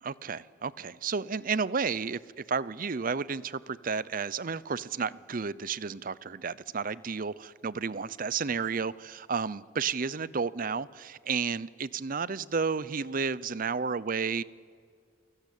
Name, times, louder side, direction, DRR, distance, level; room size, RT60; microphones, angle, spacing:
voice 1, 0.0-2.2 2.5-14.4, right 5 dB, 45° right, 19 dB, 0.6 m, -32 dB
28.5 x 18.5 x 8.4 m, 2.1 s
head